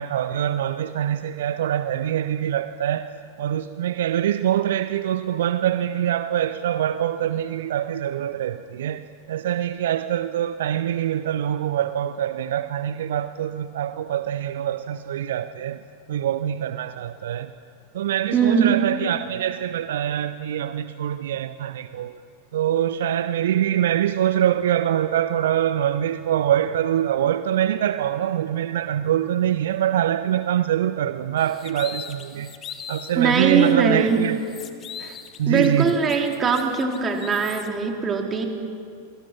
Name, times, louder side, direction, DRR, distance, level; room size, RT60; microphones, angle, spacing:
voice 1, 0.0-15.8 16.1-17.5 17.9-22.2 22.5-32.5 32.9-34.4 35.4-35.9, right 11 dB, 60° right, 0.7 m, -24 dB
voice 2, 18.3-18.8 33.2-34.2 35.0-35.2 35.5-38.4, right 5 dB, 20° right, 3.7 m, -21 dB
sound 1, 31.4-33.2 33.6-33.7 34.1-37.7, left 8 dB, 30° left, 1.9 m, -40 dB
28.0 x 23.5 x 5.9 m
figure-of-eight pair, 90°, 0 cm